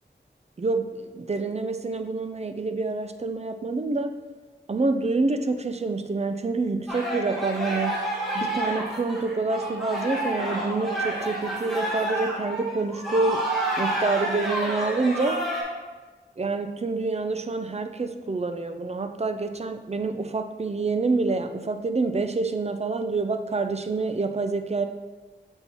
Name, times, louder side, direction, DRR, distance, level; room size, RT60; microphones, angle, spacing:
voice 1, 0.6-4.1 4.7-8.0 8.3-13.5 13.8-15.4 16.4-24.9, right 3 dB, 35° right, 8 dB, 0.5 m, -27 dB
sound 1, 6.9-15.6, right 1 dB, ahead, 1.9 m, -29 dB
6.9 x 5.3 x 3.0 m, 1.3 s
wide cardioid pair, 70°, 19 cm